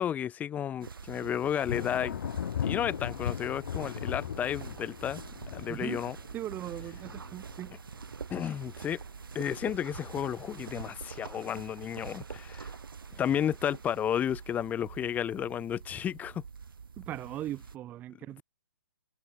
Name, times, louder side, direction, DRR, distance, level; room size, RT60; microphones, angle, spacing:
voice 1, 0.0-2.2 2.6-5.2 5.5-6.2 8.3-9.0 9.3-12.8 13.1-16.4, left 9 dB, 15° left, 1.1 m, -32 dB
sound 1, 0.8-17.7, right 5 dB, 75° right, 2.4 m, -45 dB
Thunder, 1.6-8.1 8.4-9.0 9.5-10.3, left 9 dB, 55° left, 0.7 m, -38 dB
voice 2, 5.7-6.0 6.3-7.7 17.0-18.4, right 13 dB, 15° right, 0.4 m, -39 dB
hypercardioid pair, 140°, 12 cm